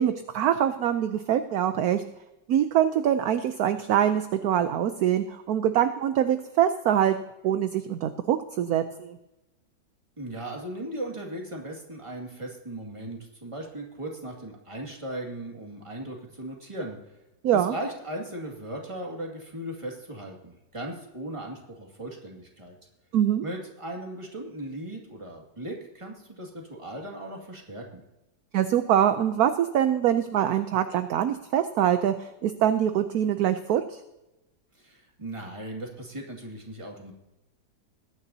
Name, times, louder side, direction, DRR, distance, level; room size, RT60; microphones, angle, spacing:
voice 1, 0.0-2.0 2.5-7.1 7.4-9.2 17.4-17.7 23.1-23.4 28.5-34.0, right 10 dB, 65° right, 9 dB, 1.0 m, -24 dB
voice 2, 10.2-17.0 17.5-22.8 23.4-28.0 34.8-37.1, right 1 dB, 15° right, 0 dB, 2.1 m, -37 dB
21.0 x 10.0 x 2.8 m, 0.98 s
omnidirectional pair, 1.9 m